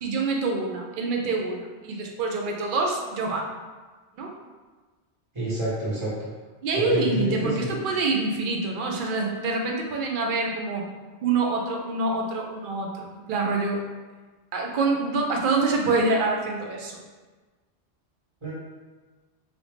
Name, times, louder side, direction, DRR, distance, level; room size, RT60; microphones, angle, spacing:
voice 1, 0.0-3.5 4.2-4.3 6.6-10.9 11.2-13.8 14.5-17.0, right 3 dB, 60° right, 1 dB, 0.6 m, -26 dB
voice 2, 5.3-6.1 6.8-7.7 18.4-18.5, right 1 dB, 25° right, -9 dB, 1.3 m, -28 dB
3.3 x 2.6 x 3.1 m, 1.3 s
omnidirectional pair, 1.1 m